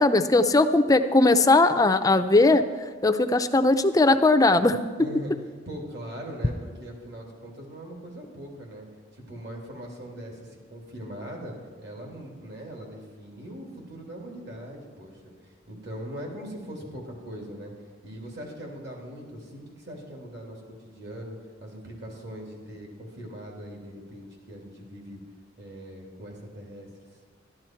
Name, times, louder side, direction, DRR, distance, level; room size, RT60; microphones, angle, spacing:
voice 1, 0.0-2.6 3.0-4.8, left 2 dB, 20° left, 9 dB, 0.5 m, -19 dB
voice 2, 5.0-8.9 9.1-15.1 15.4-17.7 18.0-25.2 25.6-26.9, equal, 60° right, 0 dB, 2.6 m, -40 dB
11.5 x 11.5 x 4.5 m, 1.6 s
head